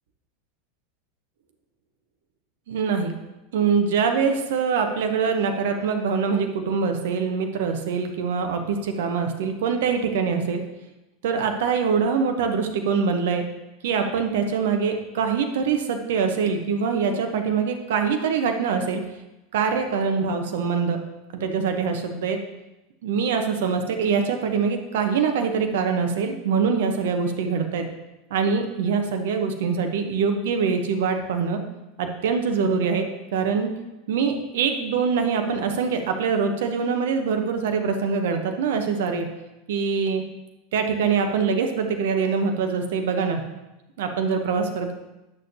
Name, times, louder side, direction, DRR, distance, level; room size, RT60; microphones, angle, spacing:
voice 1, 2.7-3.1 3.5-10.6 11.2-13.4 13.8-19.0 19.5-21.0 21.3-22.4 23.0-27.9 28.3-31.6 32.0-33.1 33.3-33.7 34.1-39.3 39.7-40.2 40.7-43.4 44.0-44.9, right 5 dB, 65° right, 5 dB, 0.8 m, -24 dB
9.6 x 6.4 x 2.7 m, 0.99 s
figure-of-eight pair, 85°, 0 cm